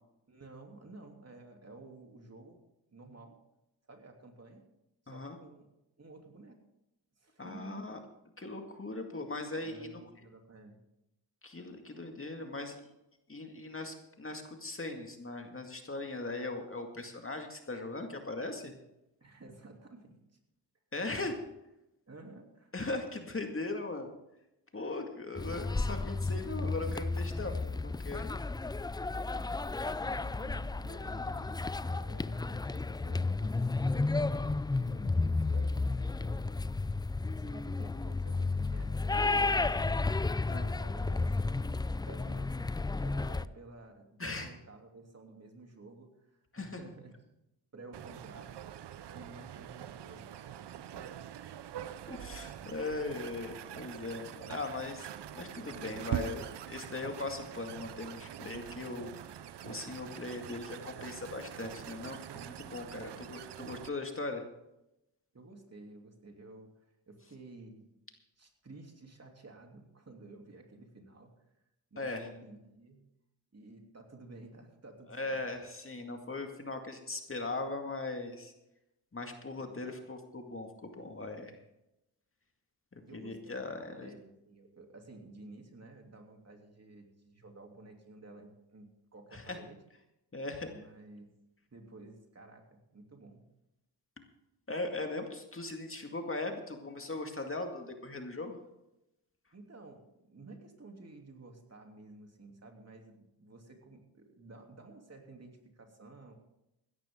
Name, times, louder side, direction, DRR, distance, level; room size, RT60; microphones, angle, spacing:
voice 1, 0.3-2.6 2.9-3.4 3.9-4.6 5.0-5.7 6.0-6.6 7.2-7.8 9.6-10.8 19.2-20.2 22.1-22.7 30.0-34.3 34.8-36.7 37.2-39.9 40.7-47.1 47.7-48.6 49.1-50.3 62.9-63.1 65.3-66.7 67.1-67.9 68.4-71.3 71.9-73.0 73.5-75.4 79.5-79.9 83.0-89.8 90.7-91.3 91.7-93.4 99.5-106.3, right 2 dB, 35° right, 2 dB, 3.1 m, -52 dB
voice 2, 5.1-5.4 7.4-8.0 8.4-9.9 11.4-12.8 13.3-18.7 20.9-21.3 22.7-24.1 24.7-28.2 40.5-40.7 44.2-44.5 46.5-46.8 52.1-59.1 59.6-64.4 72.0-72.3 75.1-78.5 79.1-81.6 82.9-84.1 89.3-89.6 90.3-90.7 94.7-98.6, left 2 dB, 30° left, 4 dB, 2.2 m, -39 dB
sound 1, 25.4-43.5, left 3 dB, 10° left, 0.4 m, -32 dB
sound 2, 47.9-63.9, right 10 dB, 75° right, 0.8 m, -44 dB
16.0 x 13.0 x 3.8 m, 0.89 s
cardioid pair, 60°, 41 cm